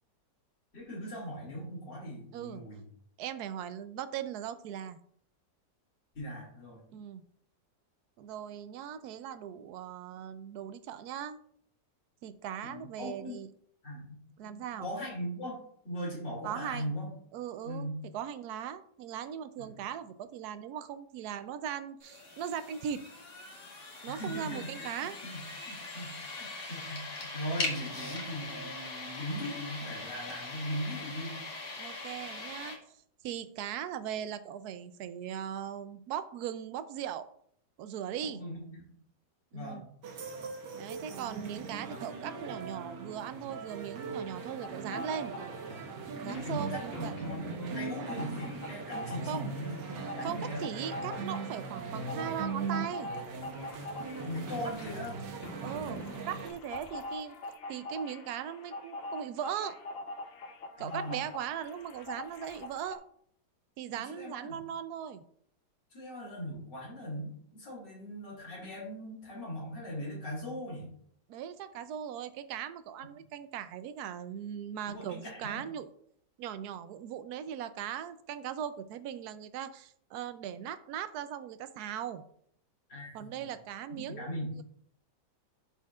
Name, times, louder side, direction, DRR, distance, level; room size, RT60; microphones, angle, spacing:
voice 1, 0.7-2.8 6.1-6.8 12.6-13.4 13.8-15.6 15.8-17.1 17.6-18.0 19.6-19.7 24.0-31.4 38.2-38.8 39.5-39.9 46.1-49.8 50.1-50.6 54.2-55.1 60.8-61.2 64.1-64.3 65.9-70.9 74.9-75.6 82.9-83.5 83.9-84.5, equal, 85° left, -3 dB, 3.3 m, -39 dB
voice 2, 2.3-2.6 3.2-5.0 6.9-7.2 8.2-11.4 12.2-13.5 14.4-14.9 16.4-16.9 17.3-17.9 18.1-23.0 24.0-25.2 31.8-32.8 33.2-37.3 37.8-38.4 39.5-39.8 40.7-45.3 46.2-47.1 49.3-49.5 50.2-53.1 55.6-57.4 57.7-59.8 60.8-63.0 63.8-65.2 71.3-75.9 76.4-82.2 83.1-84.6, right 9 dB, 75° right, 12 dB, 1.0 m, -39 dB
sound 1, 22.0-32.7, left 2 dB, 45° left, 1.6 m, -41 dB
sound 2, 40.0-56.5, right 4 dB, 90° right, 1.6 m, -40 dB
sound 3, 44.6-45.8 46.2-63.0, left 2 dB, 65° left, 0.5 m, -43 dB
12.5 x 4.2 x 2.4 m, 0.64 s
omnidirectional pair, 1.8 m